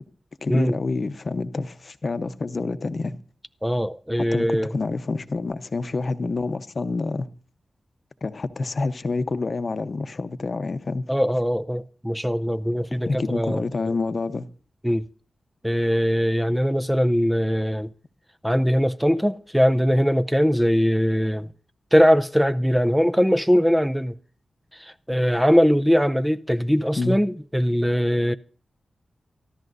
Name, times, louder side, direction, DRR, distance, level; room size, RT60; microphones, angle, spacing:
voice 1, 0.4-3.2 4.2-7.3 8.2-11.1 12.9-14.5 27.0-27.2, left 3 dB, 55° left, 0.8 m, -27 dB
voice 2, 3.6-4.7 11.1-14.0 14.8-15.1 15.6-17.9 18.4-21.5 21.9-24.1 24.7-28.3, equal, 5° right, 0.5 m, -21 dB
24.0 x 13.5 x 2.6 m
cardioid pair, 65°, 0 cm